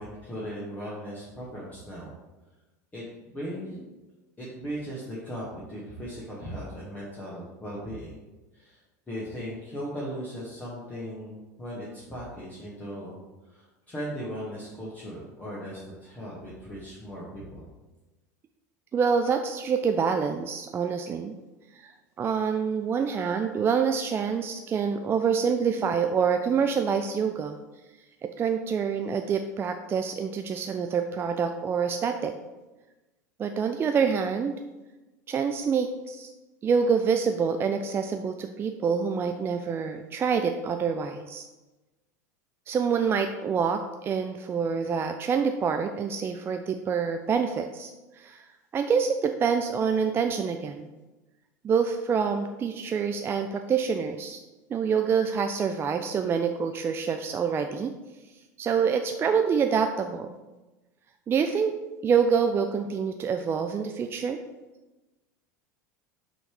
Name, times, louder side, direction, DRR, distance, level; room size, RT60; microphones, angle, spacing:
voice 1, 0.0-2.1 2.9-3.0 3.3-3.8 4.4-8.1 8.5-8.8 9.1-13.2 13.5-17.7, equal, 15° left, -6 dB, 1.5 m, -38 dB
voice 2, 18.9-21.3 21.7-21.9 22.2-27.6 28.2-32.4 33.4-34.5 35.3-36.3 36.6-41.5 42.7-48.5 48.7-50.9 51.6-54.4 54.7-57.9 58.6-60.4 61.3-61.7 62.0-64.4, right 6 dB, 25° right, 6 dB, 0.4 m, -26 dB
6.1 x 3.2 x 4.8 m, 1.1 s
figure-of-eight pair, 80°, 9 cm